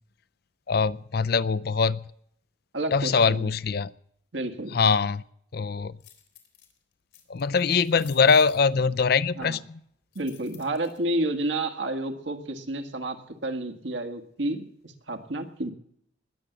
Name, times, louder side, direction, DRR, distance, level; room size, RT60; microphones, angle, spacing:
voice 1, 0.7-2.0 2.9-3.9 4.7-5.2 5.5-5.9 7.3-9.8, left 5 dB, 55° left, 19 dB, 0.5 m, -23 dB
voice 2, 2.7-3.5 4.3-4.8 9.3-9.6 10.1-15.7, right 1 dB, 75° right, 6 dB, 1.7 m, -30 dB
sound 1, 6.0-6.7 7.1-8.6 10.1-11.0, left 9 dB, 80° left, 3.2 m, -51 dB
20.0 x 7.2 x 7.9 m, 0.69 s
head